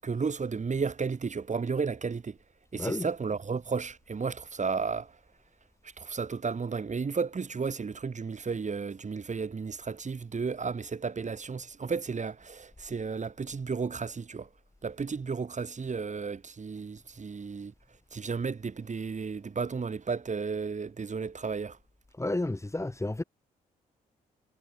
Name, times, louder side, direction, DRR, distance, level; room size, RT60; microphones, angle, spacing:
voice 1, 0.0-2.4 2.7-5.2 6.0-14.5 14.8-17.7 18.1-21.8, right 5 dB, 45° right, 7.7 m, -33 dB
voice 2, 22.2-23.2, left 2 dB, 15° left, 4.0 m, -31 dB
supercardioid pair, 55°, 18 cm